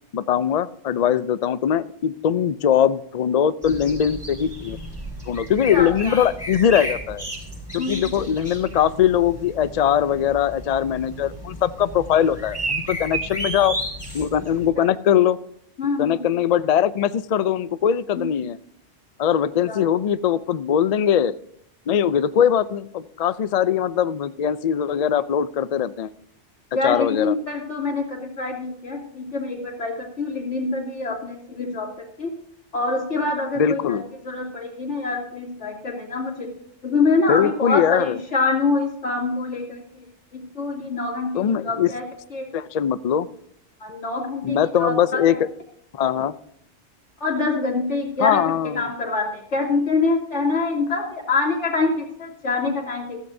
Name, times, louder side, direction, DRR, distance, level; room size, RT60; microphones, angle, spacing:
voice 1, 0.1-4.8 5.3-7.2 7.7-13.8 14.1-15.4 16.0-18.6 19.2-21.3 21.9-26.1 26.8-27.3 33.6-34.1 37.3-38.2 41.4-41.9 42.5-43.3 44.4-45.4 45.9-46.3 48.2-48.9, left 9 dB, 55° left, 15 dB, 0.4 m, -21 dB
sound 1, 3.6-14.7, right 1 dB, 10° right, 6.3 m, -33 dB
voice 2, 5.7-6.2 7.8-8.0 14.8-14.9 15.8-16.2 18.2-18.3 19.6-19.8 26.7-32.3 32.7-36.5 36.8-40.0 40.3-42.0 42.3-42.5 43.8-45.4 47.2-48.4 48.7-53.2, left 3 dB, 85° left, -1 dB, 3.2 m, -25 dB
14.5 x 14.0 x 2.7 m, 0.70 s
omnidirectional pair, 1.2 m